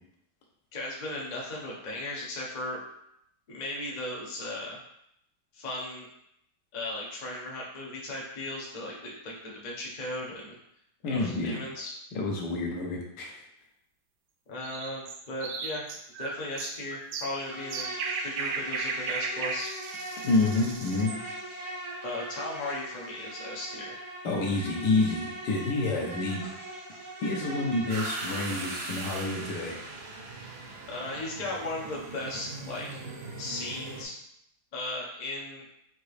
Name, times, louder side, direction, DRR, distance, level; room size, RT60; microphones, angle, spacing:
voice 1, 0.7-2.8 3.5-4.8 5.5-6.1 6.7-10.6 11.1-11.9 14.5-15.8 16.2-17.9 18.2-19.7 22.0-24.1 30.9-33.0 33.4-34.1 34.7-35.7, left 1 dB, 45° left, -3 dB, 0.5 m, -36 dB
voice 2, 11.0-11.6 12.1-13.4 20.2-21.1 24.2-26.4 27.2-29.8, left 3 dB, 70° left, -1 dB, 1.4 m, -28 dB
sound 1, 14.6-21.2, right 4 dB, 85° right, 0.8 m, -35 dB
Insect, 17.2-28.7, right 1 dB, 50° right, 0.3 m, -40 dB
sound 2, 27.9-34.0, right 3 dB, 65° right, 1.1 m, -39 dB
5.2 x 2.8 x 3.2 m, 0.76 s
omnidirectional pair, 2.1 m